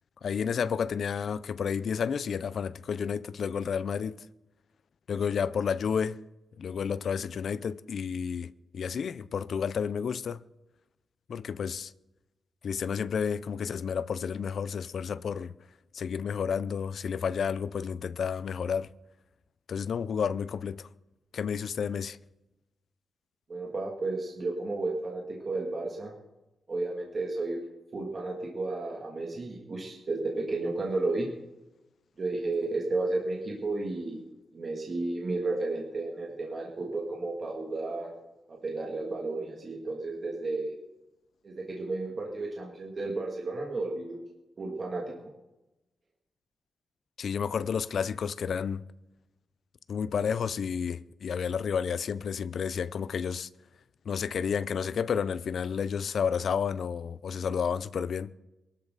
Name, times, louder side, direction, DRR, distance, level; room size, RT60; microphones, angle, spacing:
voice 1, 0.2-4.2 5.1-6.2 6.6-10.4 11.3-11.9 12.6-15.5 15.9-18.9 19.7-20.9 21.3-22.2 47.2-48.8 49.9-53.5 54.1-58.3, left 7 dB, 55° left, 0.5 m, -31 dB
voice 2, 23.5-26.1 26.7-27.6 27.9-31.3 32.2-34.2 34.5-38.1 38.5-40.7 41.4-44.2 44.6-45.1, right 2 dB, 35° right, 2.6 m, -32 dB
23.0 x 13.0 x 4.1 m
wide cardioid pair, 170°, 0 cm